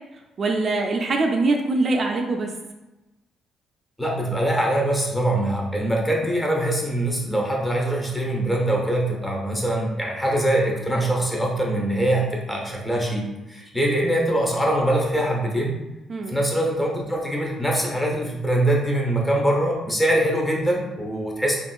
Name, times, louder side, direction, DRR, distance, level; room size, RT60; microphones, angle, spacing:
voice 1, 0.4-2.5 16.1-16.4, right 3 dB, 45° right, 2 dB, 0.3 m, -23 dB
voice 2, 4.0-15.8 16.3-21.6, right 1 dB, 10° left, -2 dB, 0.8 m, -23 dB
3.6 x 2.3 x 2.3 m, 1.0 s
cardioid pair, 90°, 0 cm